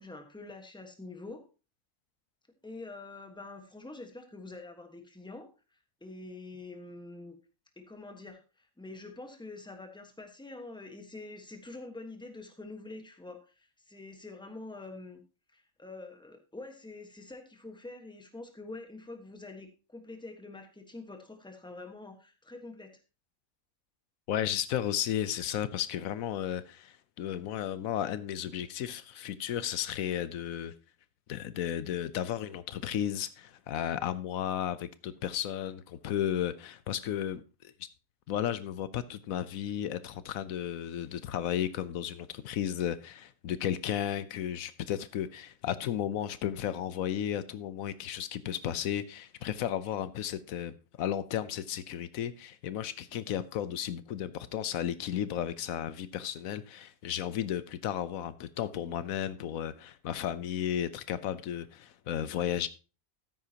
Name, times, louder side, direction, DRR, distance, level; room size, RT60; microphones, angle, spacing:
voice 1, 0.0-1.4 2.6-5.5 6.0-7.4 7.8-15.2 15.5-23.0, left 2 dB, 5° left, 1.2 m, -46 dB
voice 2, 24.3-30.7 31.3-37.4 37.8-37.9 38.3-62.7, left 10 dB, 90° left, 1.1 m, -34 dB
13.0 x 9.5 x 2.9 m
omnidirectional pair, 1.4 m